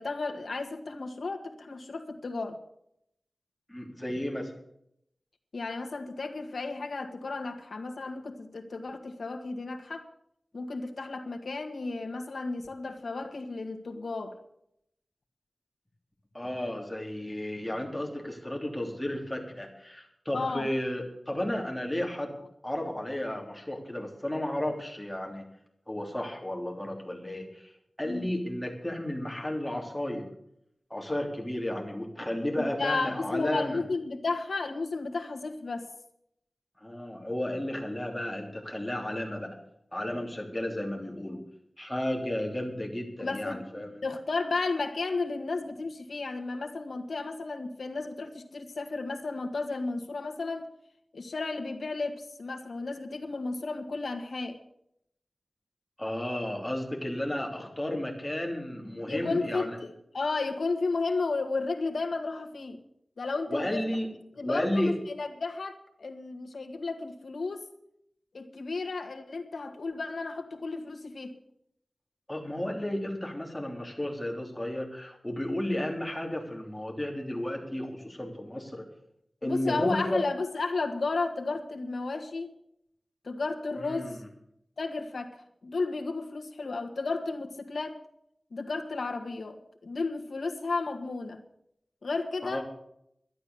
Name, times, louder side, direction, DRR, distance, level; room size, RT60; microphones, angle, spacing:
voice 1, 0.0-2.6 5.5-10.1 10.5-14.4 20.3-20.7 28.0-28.3 32.6-35.9 43.2-43.6 44.0-50.7 51.1-54.6 59.1-62.8 63.2-63.8 64.4-67.7 68.3-71.4 79.4-82.5 83.2-84.2 84.8-85.4 85.6-88.0 88.5-91.4 92.0-92.6, left 3 dB, 90° left, 5 dB, 1.6 m, -33 dB
voice 2, 3.7-4.5 16.3-22.3 22.6-25.4 25.9-27.7 28.0-30.3 30.9-33.8 36.8-39.6 39.9-41.4 41.8-44.0 56.0-59.8 63.5-64.1 64.4-64.9 72.3-78.8 79.4-80.2 83.8-84.2 92.4-92.6, left 1 dB, 10° left, 1 dB, 3.1 m, -33 dB
12.0 x 11.0 x 6.9 m, 0.75 s
wide cardioid pair, 85°, 0 cm